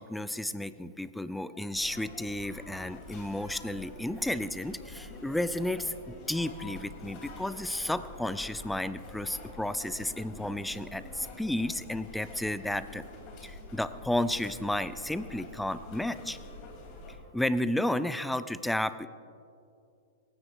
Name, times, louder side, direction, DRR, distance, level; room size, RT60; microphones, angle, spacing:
voice 1, 0.0-13.0 13.4-16.4 17.3-19.1, left 1 dB, 5° left, 14 dB, 0.5 m, -32 dB
sound 1, 1.7-17.1, left 2 dB, 35° left, 3.1 m, -47 dB
27.0 x 15.5 x 2.6 m, 2.5 s
figure-of-eight pair, 100°, 0 cm